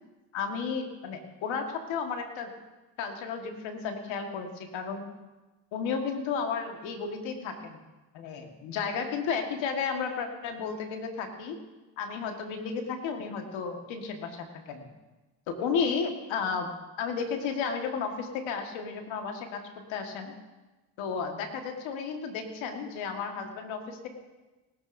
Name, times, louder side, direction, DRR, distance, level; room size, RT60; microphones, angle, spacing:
voice 1, 0.3-2.5 3.0-5.1 5.7-7.8 8.1-11.6 12.0-14.9 15.5-16.7 17.0-19.6 19.9-20.3 21.0-24.1, left 5 dB, 90° left, 4 dB, 1.7 m, -33 dB
19.5 x 12.5 x 2.6 m, 1.1 s
supercardioid pair, 50°, 45 cm